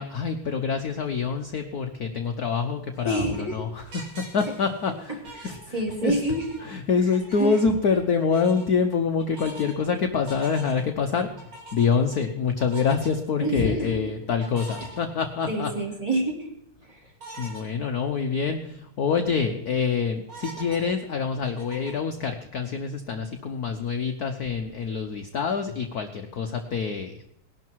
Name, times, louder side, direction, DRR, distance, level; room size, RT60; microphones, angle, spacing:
voice 1, 0.0-5.2 5.4-5.6 6.0-6.1 6.7-11.3 11.7-15.7 17.4-27.3, left 5 dB, 55° left, 6 dB, 1.2 m, -26 dB
sound 1, 2.9-6.0 6.3-8.0 8.3-8.6 9.2-9.8 10.3-10.9 11.4-12.2 12.6-13.1 14.4-15.6 16.1-16.2 17.2-17.6 18.1-18.2 18.5-18.6 19.1-19.4 20.3-22.1, right 1 dB, 70° right, 4.7 m, -43 dB
voice 2, 3.0-3.6 5.3-6.5 7.0-7.6 13.4-14.0 15.5-16.5 16.8-17.1, right 1 dB, 15° right, 0 dB, 3.3 m, -28 dB
19.0 x 11.5 x 4.6 m, 0.78 s
omnidirectional pair, 2.3 m